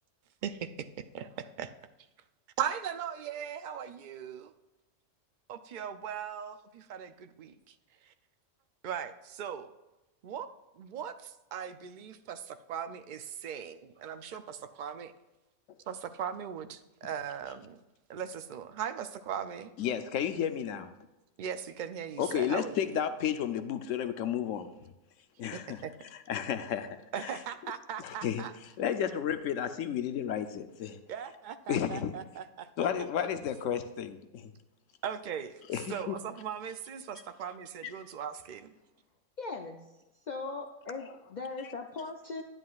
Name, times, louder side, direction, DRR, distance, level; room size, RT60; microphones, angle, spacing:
voice 1, 0.4-1.7 2.6-4.5 5.5-7.7 8.0-8.1 8.8-9.7 10.2-10.5 10.8-15.1 15.9-17.8 18.1-19.7 21.4-23.0 25.5-25.9 27.1-28.5 31.1-32.7 35.0-38.7, right 8 dB, 60° right, 10 dB, 0.5 m, -39 dB
voice 2, 19.8-20.9 22.2-24.9 25.4-25.8 26.3-27.3 28.0-28.4 28.8-31.0 31.7-32.1 32.8-34.5 35.7-36.2 41.0-41.1, left 9 dB, 80° left, 10 dB, 1.0 m, -32 dB
voice 3, 39.4-39.8 40.3-42.4, left 3 dB, 50° left, 3 dB, 0.5 m, -39 dB
10.5 x 9.4 x 2.4 m, 1.0 s
omnidirectional pair, 1.3 m